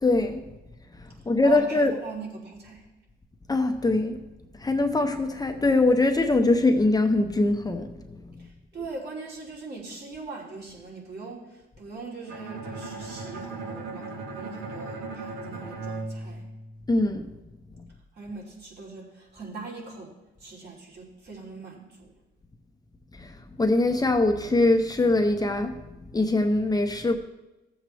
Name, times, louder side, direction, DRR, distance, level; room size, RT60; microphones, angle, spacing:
voice 1, 0.0-0.4 1.3-2.0 3.5-4.2 4.6-7.9 16.9-17.3 23.2-23.3 23.6-25.7 26.1-27.2, left 2 dB, 20° left, 0.7 m, -22 dB
voice 2, 1.2-2.8 8.4-16.5 18.1-20.1 20.4-22.1, right 3 dB, 55° right, 3.3 m, -41 dB
Bowed string instrument, 12.3-17.2, right 3 dB, 90° right, 1.4 m, -37 dB
15.0 x 7.5 x 3.3 m
cardioid pair, 90°, 20 cm